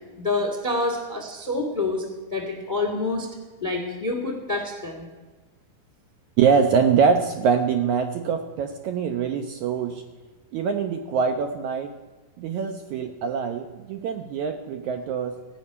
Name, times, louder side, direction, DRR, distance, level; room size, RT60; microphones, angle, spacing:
voice 1, 0.2-2.0 2.3-3.3 3.6-5.0, left 2 dB, 35° left, 3 dB, 0.7 m, -27 dB
voice 2, 6.4-10.0 10.5-11.9 12.4-15.3, right 6 dB, 75° right, 5 dB, 1.8 m, -23 dB
16.0 x 5.5 x 9.6 m, 1.3 s
omnidirectional pair, 4.0 m